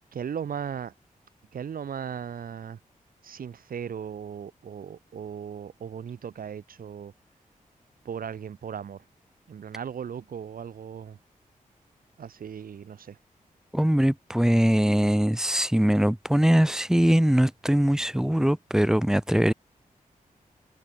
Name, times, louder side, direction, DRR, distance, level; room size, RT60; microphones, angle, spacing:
voice 1, 0.1-0.9 1.5-2.8 3.2-7.1 8.0-9.0 9.5-11.2 12.2-13.2, right 8 dB, 85° right, 2.9 m, -37 dB
voice 2, 13.7-19.5, equal, 5° right, 1.1 m, -22 dB
wide cardioid pair, 130°, 14 cm